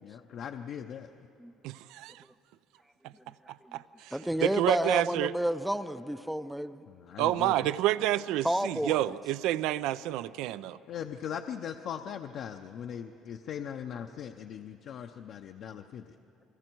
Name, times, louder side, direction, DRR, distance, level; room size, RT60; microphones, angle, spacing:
voice 1, 0.0-1.1 6.9-7.6 10.9-16.1, left 8 dB, 55° left, 0.6 m, -40 dB
voice 2, 1.6-2.2 3.7-4.1 4.4-5.3 7.2-10.8, right 14 dB, 80° right, 0.4 m, -29 dB
voice 3, 4.1-6.8 8.4-9.1, equal, 5° right, 0.5 m, -30 dB
29.0 x 21.0 x 4.6 m
cardioid pair, 135°, 0 cm